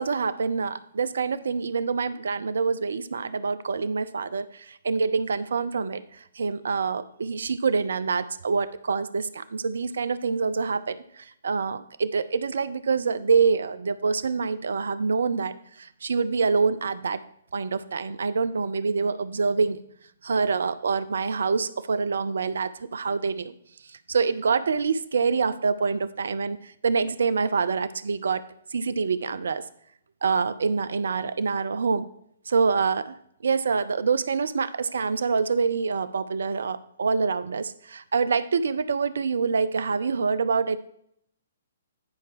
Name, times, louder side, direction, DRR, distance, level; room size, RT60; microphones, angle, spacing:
voice 1, 0.0-17.2 17.5-19.8 20.2-23.6 23.9-28.4 28.7-29.6 30.2-32.1 32.5-33.2 33.4-40.8, right 5 dB, 65° right, 15 dB, 0.5 m, -26 dB
9.6 x 4.6 x 4.7 m, 0.71 s
figure-of-eight pair, 125°, 0 cm